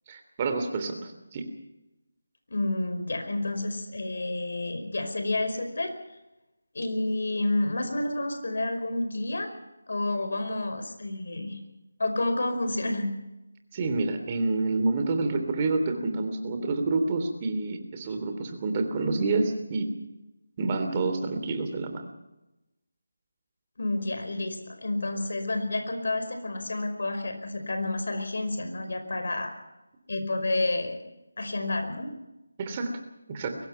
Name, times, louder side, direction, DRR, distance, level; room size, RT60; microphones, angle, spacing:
voice 1, 0.1-1.5 13.7-19.9 20.6-22.0 32.6-32.9 33.3-33.6, right 3 dB, 25° right, 6 dB, 3.1 m, -28 dB
voice 2, 2.5-5.9 6.7-9.5 9.9-11.6 12.0-13.1 23.8-29.5 30.1-31.0 31.4-32.1, left 2 dB, 65° left, 7 dB, 5.1 m, -29 dB
23.0 x 20.0 x 5.8 m, 0.96 s
figure-of-eight pair, 165°, 0 cm